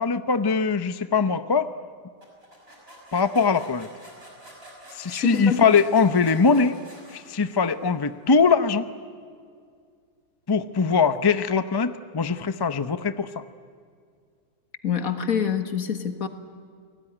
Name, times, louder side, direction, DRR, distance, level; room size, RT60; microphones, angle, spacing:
voice 1, 0.0-1.7 3.1-3.9 4.9-6.8 7.1-8.9 10.5-13.4, left 5 dB, 30° left, 11 dB, 0.4 m, -22 dB
sound 1, 2.2-7.9, equal, 35° right, 6.1 m, -48 dB
voice 2, 5.1-5.7 14.8-16.3, left 8 dB, 60° left, 8 dB, 2.0 m, -26 dB
29.5 x 19.0 x 10.0 m, 2.2 s
omnidirectional pair, 1.7 m